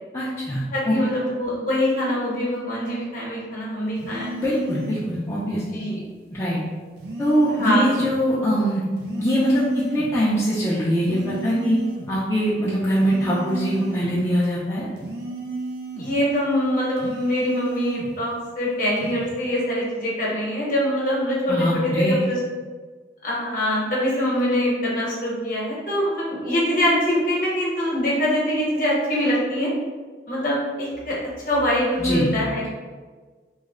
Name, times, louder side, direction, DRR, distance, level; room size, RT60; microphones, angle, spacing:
voice 1, 0.1-0.9 4.4-5.6 6.3-6.6 7.2-8.8 9.2-11.8 12.1-14.9 21.5-22.2 32.0-32.3, equal, 15° left, -9 dB, 0.4 m, -22 dB
voice 2, 0.7-4.3 5.5-6.0 7.5-7.9 16.0-22.4 23.2-29.7 30.3-31.2 31.5-32.7, equal, 50° left, -5 dB, 0.9 m, -24 dB
sound 1, 4.0-5.1 7.0-8.1 9.0-10.1 11.0-12.1 13.0-14.2 15.0-16.2 17.0-18.2 19.0-19.3, right 2 dB, 65° right, 0.5 m, -33 dB
3.1 x 2.0 x 3.7 m, 1.4 s
head